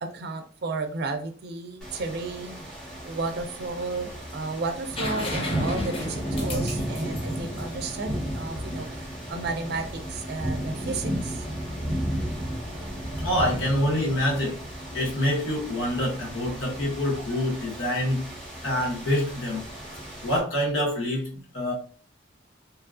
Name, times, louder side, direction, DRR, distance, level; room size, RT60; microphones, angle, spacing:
voice 1, 0.0-2.6 3.0-9.0 9.3-11.5, right 3 dB, 55° right, 7 dB, 0.4 m, -33 dB
sound 1, 1.8-20.4, equal, 5° left, 0.9 m, -34 dB
sound 2, 5.0-8.7 10.5-10.6, left 2 dB, 30° left, 0.6 m, -36 dB
voice 2, 13.2-18.2 18.6-19.6 20.2-21.3 21.5-21.7, left 1 dB, 85° left, -2 dB, 1.1 m, -26 dB
2.9 x 2.3 x 2.4 m, 0.41 s
head